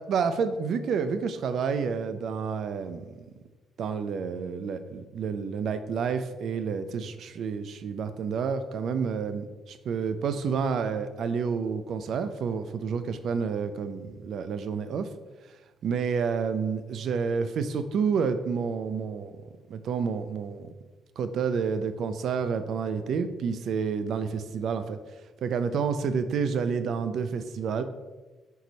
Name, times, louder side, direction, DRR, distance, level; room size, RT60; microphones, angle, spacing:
voice 1, 0.0-3.2 3.8-15.1 15.8-19.3 19.7-20.7 21.2-25.0 25.4-27.8, right 6 dB, 65° right, 10 dB, 0.4 m, -29 dB
4.6 x 4.0 x 5.1 m, 1.2 s
cardioid pair, 90°, 0 cm